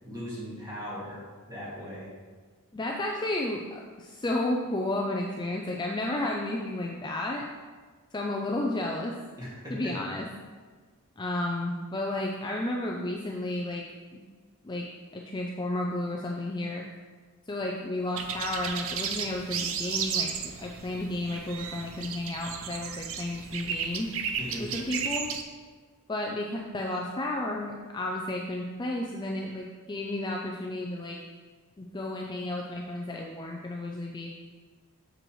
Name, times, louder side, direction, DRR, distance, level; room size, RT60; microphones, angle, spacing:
voice 1, 0.0-1.2 1.5-2.1 9.4-10.0 24.4-24.7, equal, 15° right, -7 dB, 2.1 m, -38 dB
voice 2, 2.7-7.4 8.1-9.2 9.7-10.2 11.2-13.8 14.1-14.2 14.6-14.8 15.1-16.8 17.5-20.3 20.6-24.1 24.6-25.3 26.1-31.2 31.8-34.3, left 1 dB, 20° left, 0 dB, 0.4 m, -32 dB
sound 1, 18.2-25.4, right 7 dB, 60° right, 0.5 m, -34 dB
7.7 x 6.2 x 3.1 m, 1.5 s
head